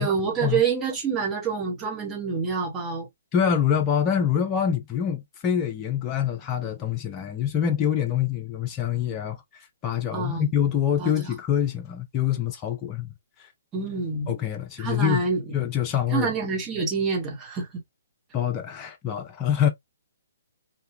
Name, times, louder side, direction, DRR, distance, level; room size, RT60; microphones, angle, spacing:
voice 1, 0.0-3.1 10.1-10.5 11.0-11.3 13.7-14.3 14.8-15.4 16.1-17.8, right 5 dB, 20° right, 1.3 m, -27 dB
voice 2, 3.3-13.1 13.4-13.5 14.3-15.2 15.5-16.3 18.3-19.7, left 9 dB, 25° left, 0.5 m, -25 dB
2.8 x 2.4 x 2.7 m
figure-of-eight pair, 130°, 0 cm